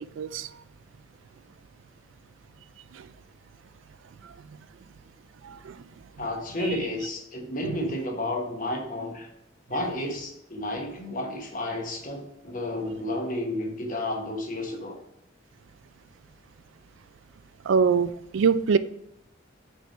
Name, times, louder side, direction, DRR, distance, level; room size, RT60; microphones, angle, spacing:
voice 1, 0.2-0.5 5.4-5.7 7.7-7.8 17.7-18.8, right 5 dB, 75° right, 0.3 m, -23 dB
voice 2, 6.2-9.3 9.7-15.0, left 1 dB, 40° left, 1.1 m, -31 dB
5.1 x 4.5 x 4.5 m
head